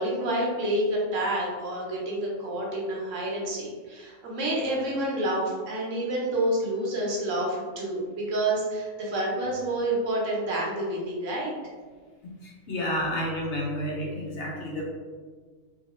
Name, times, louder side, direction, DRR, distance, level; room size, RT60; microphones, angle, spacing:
voice 1, 0.0-11.5, right 1 dB, 75° right, -3 dB, 1.2 m, -28 dB
voice 2, 12.4-14.8, equal, 65° left, -3 dB, 1.1 m, -30 dB
3.0 x 2.7 x 3.0 m, 1.5 s
omnidirectional pair, 1.3 m